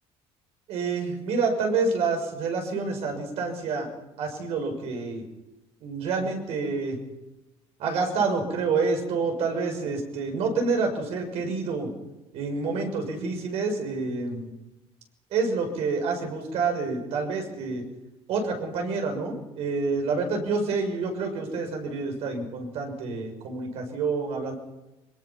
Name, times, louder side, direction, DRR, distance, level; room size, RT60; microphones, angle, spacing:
voice 1, 0.7-3.9 4.2-5.3 5.8-7.0 7.8-11.9 12.3-14.5 15.3-17.8 18.3-24.5, right 4 dB, 65° right, 3 dB, 6.2 m, -28 dB
24.5 x 21.5 x 5.9 m, 1.0 s
cardioid pair, 155°, 11 cm